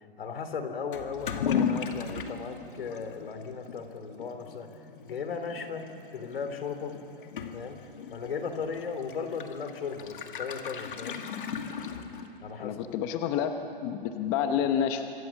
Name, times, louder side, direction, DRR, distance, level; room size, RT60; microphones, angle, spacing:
voice 1, 0.0-4.7 5.1-7.0 7.5-7.8 8.1-11.2 12.4-12.8, left 5 dB, 75° left, 8 dB, 3.5 m, -36 dB
Toilet flush / Liquid, 0.9-12.6, left 7 dB, 60° left, 2.3 m, -37 dB
voice 2, 12.6-13.5 13.8-15.1, left 9 dB, 25° left, 7 dB, 1.0 m, -28 dB
26.0 x 24.5 x 7.3 m, 2.7 s
hypercardioid pair, 160°, 29 cm